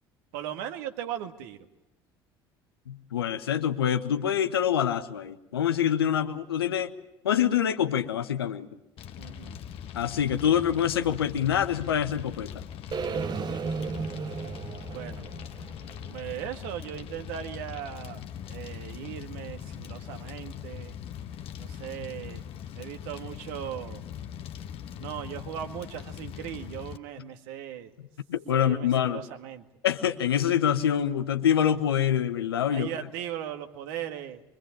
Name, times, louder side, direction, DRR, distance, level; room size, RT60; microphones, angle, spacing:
voice 1, 0.3-1.7 9.2-9.6 14.9-15.2 16.1-18.2 18.5-20.9 21.6-22.4 22.8-24.0 25.0-27.9 28.5-29.6 32.7-34.4, right 10 dB, 65° right, 6 dB, 2.0 m, -38 dB
voice 2, 2.9-6.9 7.2-8.7 9.9-12.5 28.3-29.2 29.8-32.9, left 9 dB, 75° left, 8 dB, 1.1 m, -25 dB
Fire, 9.0-27.0, left 9 dB, 50° left, 1.3 m, -41 dB
sound 1, 12.9-17.0, right 5 dB, 35° right, 0.9 m, -35 dB
24.5 x 23.5 x 7.4 m, 0.93 s
figure-of-eight pair, 60°, 13 cm